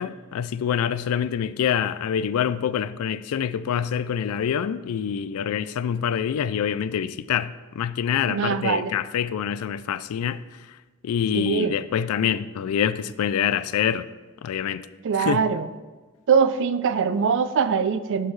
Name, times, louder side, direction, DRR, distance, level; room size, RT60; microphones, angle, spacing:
voice 1, 0.0-10.4 11.0-14.1 14.4-14.9 15.2-15.4, left 8 dB, 70° left, 0.3 m, -26 dB
voice 2, 8.3-8.9 11.3-11.8 15.0-15.7 16.3-18.3, right 6 dB, 55° right, 0.4 m, -22 dB
11.0 x 4.5 x 3.2 m
head